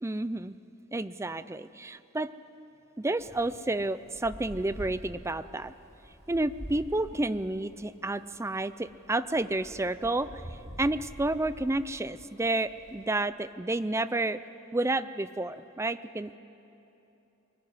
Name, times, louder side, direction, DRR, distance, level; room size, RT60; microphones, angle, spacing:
voice 1, 0.0-0.6 0.9-2.3 3.0-5.7 6.3-10.3 10.8-14.4 14.7-16.4, right 2 dB, 15° right, 14 dB, 0.5 m, -30 dB
Wind, 3.2-13.0, equal, 15° left, 4.4 m, -47 dB
23.5 x 19.5 x 9.8 m, 2.9 s
head